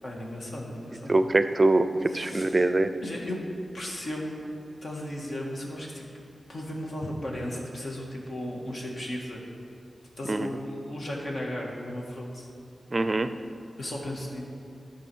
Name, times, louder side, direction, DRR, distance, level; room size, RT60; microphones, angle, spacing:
voice 1, 0.0-1.2 2.1-2.7 3.0-3.4 3.7-4.4 4.8-9.4 10.2-12.5 13.8-14.4, left 1 dB, 60° left, -2 dB, 1.8 m, -35 dB
voice 2, 1.1-2.9 10.3-10.5 12.9-13.3, right 2 dB, 35° right, 10 dB, 0.5 m, -23 dB
12.5 x 4.9 x 6.2 m, 2.5 s
wide cardioid pair, 85°, 0 cm